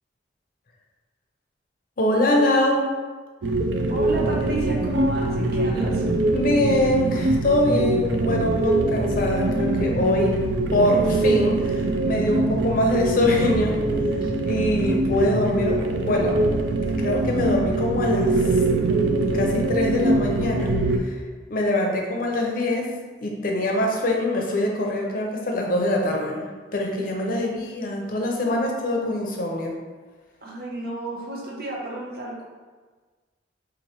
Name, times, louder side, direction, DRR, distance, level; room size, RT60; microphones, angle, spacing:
voice 1, 2.0-2.9 6.3-10.4 10.7-13.8 14.4-16.4 16.9-21.2 21.5-22.9 23.2-26.4 26.7-29.7, left 1 dB, 50° left, 0 dB, 0.6 m, -24 dB
sound 1, 3.4-21.0, right 2 dB, 75° right, 0.4 m, -23 dB
voice 2, 3.9-6.1 27.3-27.6 30.4-32.4, right 2 dB, 55° right, -3 dB, 0.8 m, -32 dB
4.5 x 2.5 x 2.9 m, 1.4 s
head